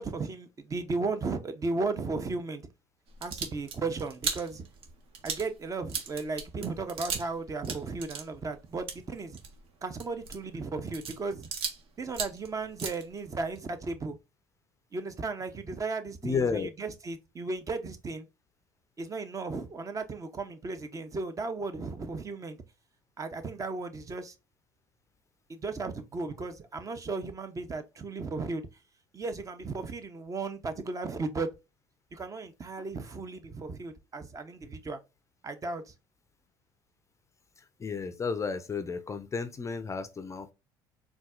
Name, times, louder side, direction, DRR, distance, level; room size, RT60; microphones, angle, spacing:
voice 1, 0.0-2.6 3.2-4.6 5.2-9.4 9.8-11.5 12.0-14.2 14.9-18.3 19.0-22.6 23.2-24.3 25.5-28.7 29.1-31.5 32.1-35.0 35.4-35.9, right 3 dB, 30° right, 0.7 m, -35 dB
sound 1, 3.1-7.4 7.6-11.8 12.1-13.6, right 6 dB, 55° right, 1.0 m, -37 dB
voice 2, 16.2-16.7 37.8-40.5, left 5 dB, 25° left, 0.4 m, -32 dB
4.0 x 2.3 x 2.4 m
hypercardioid pair, 75°, 12 cm